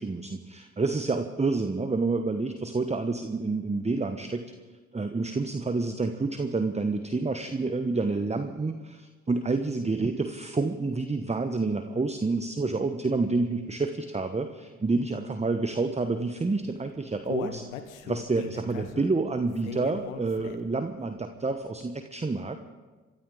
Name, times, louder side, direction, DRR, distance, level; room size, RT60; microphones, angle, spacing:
voice 1, 0.0-4.5 4.9-17.6 18.0-22.6, right 3 dB, 15° right, 8 dB, 1.1 m, -28 dB
Human voice, 16.6-20.8 21.2-21.3 21.8-21.9, left 8 dB, 80° left, 1.2 m, -39 dB
27.0 x 13.0 x 4.0 m, 1.3 s
hypercardioid pair, 45°, 40 cm